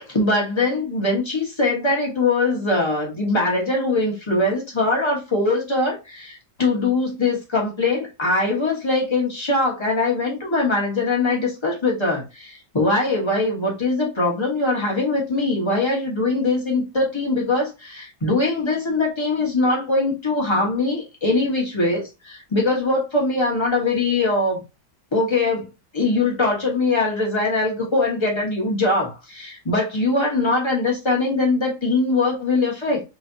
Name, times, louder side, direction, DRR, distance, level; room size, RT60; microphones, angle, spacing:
voice 1, 0.1-24.6 25.1-33.0, left 2 dB, 20° left, 1.0 m, -22 dB
3.3 x 3.1 x 2.6 m
omnidirectional pair, 2.1 m